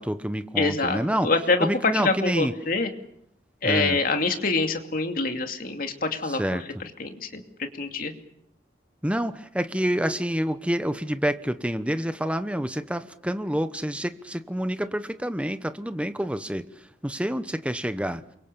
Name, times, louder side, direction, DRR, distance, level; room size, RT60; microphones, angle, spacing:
voice 1, 0.0-1.3 1.6-2.5 3.6-4.0 6.2-6.6 9.0-18.2, equal, 5° right, 11 dB, 1.0 m, -28 dB
voice 2, 0.6-2.9 3.6-6.4 7.0-7.4 7.8-8.1, left 3 dB, 50° left, 5 dB, 2.7 m, -25 dB
28.0 x 24.0 x 7.0 m, 0.72 s
head